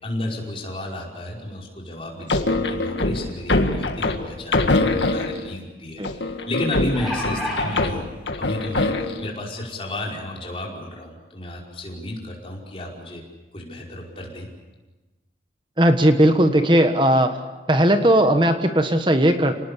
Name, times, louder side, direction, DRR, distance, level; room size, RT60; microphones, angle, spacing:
voice 1, 0.0-8.1 8.4-13.2 13.5-14.5, left 1 dB, 30° left, -2 dB, 5.3 m, -32 dB
sound 1, 2.3-5.6 6.0-9.3, left 2 dB, 85° left, 1.9 m, -23 dB
sound 2, 6.6-7.8 8.8-8.9 9.3-9.4, equal, ahead, 7.1 m, -29 dB
voice 2, 15.8-17.4 17.7-19.5, right 1 dB, 25° right, 7 dB, 1.4 m, -17 dB
27.5 x 19.0 x 8.5 m, 1.2 s
head